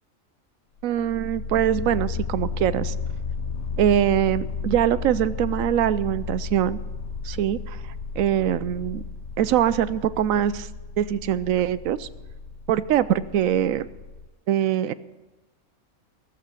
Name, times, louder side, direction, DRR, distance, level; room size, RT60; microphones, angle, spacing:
sound 1, 0.8-14.3, left 4 dB, 65° left, 0.9 m, -33 dB
voice 1, 0.8-2.9 3.8-6.8 7.2-7.8 8.2-9.0 9.4-10.7 11.0-12.1 12.7-13.9 14.5-14.9, right 10 dB, 85° right, 15 dB, 1.0 m, -23 dB
16.0 x 7.5 x 8.2 m, 1.1 s
omnidirectional pair, 1.4 m